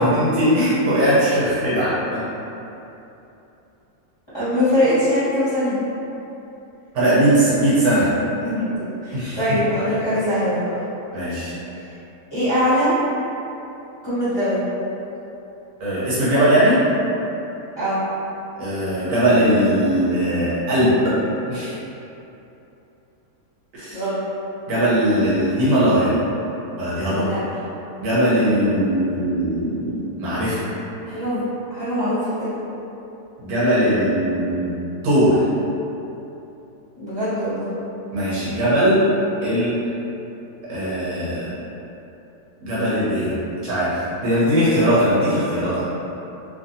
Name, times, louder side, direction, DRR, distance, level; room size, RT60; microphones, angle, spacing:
voice 1, 0.0-2.2 6.9-8.1 9.1-9.6 11.1-11.5 15.8-16.8 18.6-21.2 21.5-21.8 23.7-24.0 24.7-26.1 26.8-27.3 28.0-30.7 33.4-34.7 35.0-35.4 38.1-39.0 39.4-39.8 40.7-41.5 42.6-43.3 43.6-45.9, right 1 dB, 80° right, -10 dB, 1.2 m, -19 dB
voice 2, 4.3-5.8 8.4-10.7 12.3-12.9 14.0-14.6 17.8-18.0 23.9-24.2 27.1-27.4 31.1-31.4 31.7-32.5 37.0-37.7, equal, 20° left, -16 dB, 1.1 m, -22 dB
2.7 x 2.5 x 2.6 m, 3.0 s
omnidirectional pair, 1.6 m